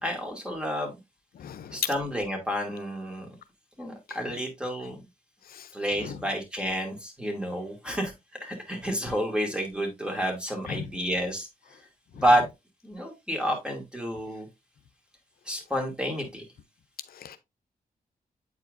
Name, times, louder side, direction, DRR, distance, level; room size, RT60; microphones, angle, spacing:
voice 1, 0.0-0.9 1.7-3.3 3.8-5.0 5.7-8.1 8.4-11.5 12.1-12.4 12.8-14.5 15.5-16.4, equal, 5° right, 2.5 m, -29 dB
voice 2, 1.4-1.8 4.1-4.2 5.5-5.7 6.0-6.1 10.7-10.9 17.1-17.4, left 8 dB, 80° left, 0.5 m, -39 dB
8.4 x 4.7 x 2.6 m
cardioid pair, 70°, 15 cm